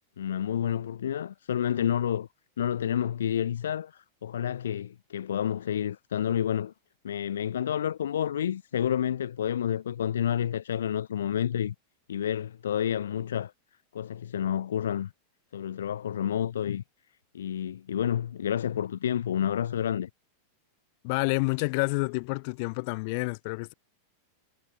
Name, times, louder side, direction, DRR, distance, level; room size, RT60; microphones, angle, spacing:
voice 1, 0.2-2.3 2.6-6.7 7.0-11.7 12.1-13.5 13.9-15.1 15.5-16.8 17.3-20.1, left 9 dB, 65° left, 2.2 m, -29 dB
voice 2, 21.0-23.7, left 31 dB, 45° left, 6.3 m, -29 dB
figure-of-eight pair, 90°, 0 cm